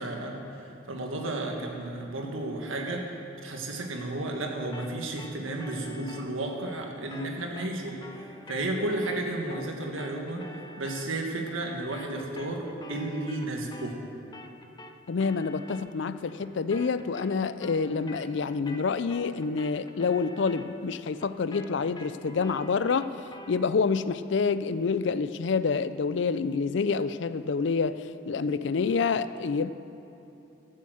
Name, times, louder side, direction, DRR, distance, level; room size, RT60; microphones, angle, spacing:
voice 1, 0.0-14.0, right 2 dB, 85° right, 1 dB, 1.7 m, -33 dB
sound 1, 4.7-14.1 14.3-23.6, left 2 dB, 20° left, 0.6 m, -48 dB
voice 2, 15.1-23.1 23.5-29.7, left 5 dB, 65° left, 13 dB, 0.4 m, -27 dB
13.5 x 7.4 x 7.8 m, 3.0 s
head